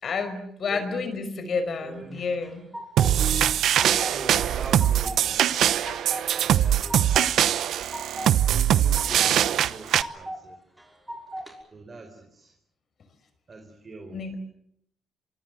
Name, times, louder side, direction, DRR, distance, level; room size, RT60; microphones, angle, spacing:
voice 1, 0.0-2.6 14.1-14.4, left 4 dB, 55° left, 10 dB, 5.4 m, -30 dB
voice 2, 0.7-1.2 1.8-2.2 3.2-5.6 6.4-7.1 8.1-10.6 11.7-12.5 13.5-14.2, right 3 dB, 35° right, 4 dB, 4.5 m, -41 dB
sound 1, 2.1-3.1 3.5-4.2 4.5-5.2 5.5-6.3 6.6-7.3 7.6-8.3 8.7-9.4 9.7-10.4 10.8-11.5, right 1 dB, 5° right, 5.9 m, -37 dB
sound 2, 3.0-10.0, right 10 dB, 75° right, 0.9 m, -22 dB
25.5 x 25.0 x 7.9 m, 0.73 s
cardioid pair, 90°, 0 cm